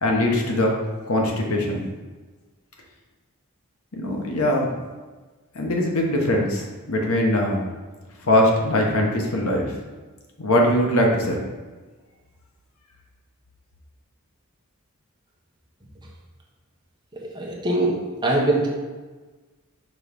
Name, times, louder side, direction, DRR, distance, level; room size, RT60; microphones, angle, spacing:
voice 1, 0.0-0.8 1.1-1.8 3.9-4.8 5.5-7.6 8.2-9.7 10.4-11.4, left 1 dB, 75° left, 0 dB, 1.1 m, -21 dB
voice 2, 17.2-18.0 18.2-18.7, right 1 dB, 20° right, -2 dB, 1.1 m, -22 dB
5.3 x 3.9 x 5.3 m, 1.3 s
head